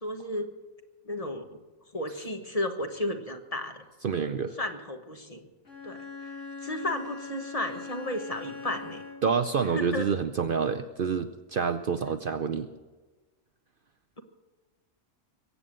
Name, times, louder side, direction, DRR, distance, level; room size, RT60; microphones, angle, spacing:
voice 1, 0.0-0.5 1.1-1.6 1.9-3.8 4.6-5.5 5.8-6.3 6.6-9.0 9.7-10.1, left 1 dB, 30° left, 6 dB, 1.3 m, -33 dB
voice 2, 4.0-4.5 9.2-12.7, right 6 dB, 55° right, 9 dB, 0.7 m, -28 dB
Bowed string instrument, 5.6-9.5, left 4 dB, 85° left, 3.1 m, -41 dB
22.5 x 8.4 x 7.5 m, 1.3 s
omnidirectional pair, 1.3 m